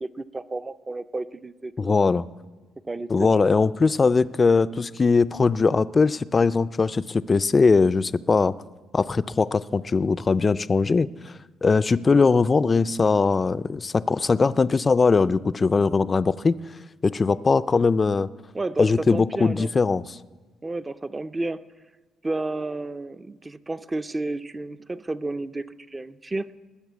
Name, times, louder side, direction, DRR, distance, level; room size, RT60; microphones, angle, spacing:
voice 1, 0.0-2.0 2.9-3.5 18.5-19.7 20.6-21.6 22.2-26.6, right 2 dB, 20° right, 12 dB, 0.5 m, -32 dB
voice 2, 1.8-2.3 3.1-8.5 8.9-11.3 11.6-16.6 17.0-18.3 18.8-20.0, left 4 dB, 30° left, 14 dB, 0.4 m, -20 dB
20.0 x 6.7 x 8.3 m, 1.3 s
cardioid pair, 90°, 0 cm